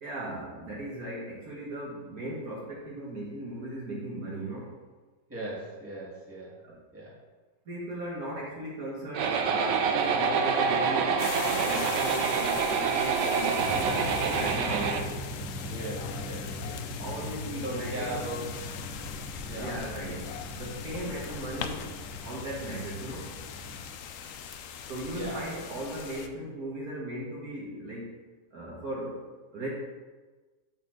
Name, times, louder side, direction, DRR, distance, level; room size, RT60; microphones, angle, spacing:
voice 1, 0.0-4.8 6.6-6.8 7.7-15.1 17.0-18.2 18.9-19.0 19.5-21.9 22.2-23.3 24.9-28.2 28.5-29.3 29.5-29.7, right 1 dB, 55° right, -5 dB, 1.8 m, -37 dB
voice 2, 5.3-6.6 6.9-7.1 15.7-16.8 17.4-18.7 19.4-19.8 25.1-25.4, right 1 dB, 5° right, -6 dB, 1.9 m, -38 dB
sound 1, 9.1-15.0, right 5 dB, 75° right, 1.3 m, -27 dB
sound 2, 11.2-26.3, left 7 dB, 75° left, 0.7 m, -41 dB
sound 3, 13.5-23.8, left 1 dB, 50° left, 1.9 m, -40 dB
7.0 x 4.1 x 6.4 m, 1.3 s
omnidirectional pair, 2.0 m